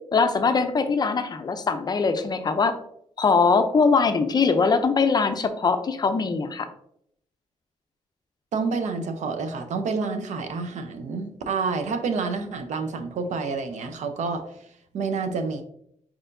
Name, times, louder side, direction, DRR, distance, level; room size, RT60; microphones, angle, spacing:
voice 1, 0.1-2.8 3.2-6.7, left 4 dB, 35° left, 9 dB, 0.4 m, -22 dB
voice 2, 8.5-14.5 14.9-15.6, right 4 dB, 75° right, 7 dB, 0.6 m, -28 dB
4.4 x 4.3 x 2.6 m, 0.70 s
wide cardioid pair, 130°, 12 cm